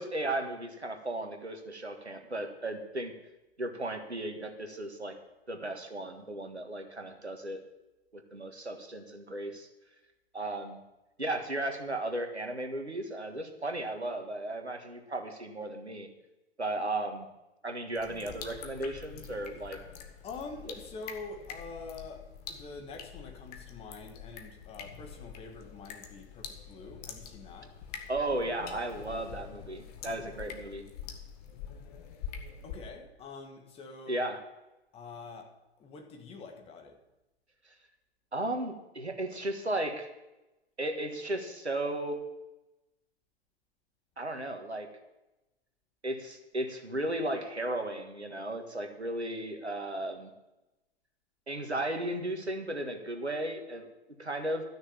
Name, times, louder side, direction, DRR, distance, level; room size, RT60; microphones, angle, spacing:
voice 1, 0.0-3.1 3.6-5.1 5.5-7.6 8.1-9.7 10.3-10.8 11.2-16.1 16.6-17.3 17.6-19.8 28.1-30.8 34.1-34.4 38.3-40.1 40.8-42.2 44.2-44.9 46.0-50.3 51.5-53.9 54.2-54.6, right 1 dB, 85° right, 5 dB, 1.7 m, -35 dB
sound 1, 17.9-32.8, left 7 dB, 35° left, 1.5 m, -45 dB
voice 2, 20.2-27.8 32.6-34.2 34.9-35.5 35.8-37.0, left 4 dB, 20° left, 4 dB, 1.5 m, -46 dB
13.5 x 6.4 x 7.3 m, 0.99 s
figure-of-eight pair, 110°, 32 cm